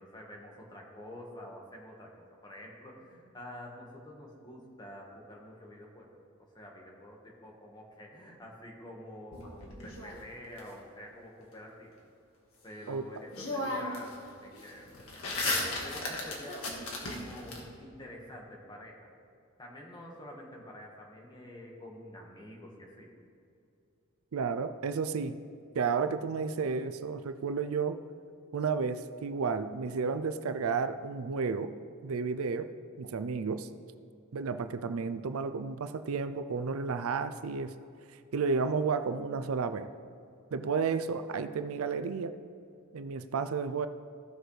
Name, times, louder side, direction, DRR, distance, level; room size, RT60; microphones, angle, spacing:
voice 1, 0.0-2.1 2.4-11.9 12.6-15.3 15.8-19.1 19.6-23.1, left 1 dB, 20° left, -1 dB, 1.5 m, -48 dB
sound 1, 9.3-10.6 12.8-12.9 13.3-14.1 14.4-17.6, left 2 dB, 80° left, 1.7 m, -35 dB
voice 2, 24.3-25.3 25.7-28.0 28.5-32.7 33.0-33.7 34.3-37.7 38.3-39.9 40.5-42.3 42.9-43.9, right 5 dB, 85° right, 10 dB, 0.5 m, -32 dB
16.0 x 6.2 x 3.3 m, 2.5 s
head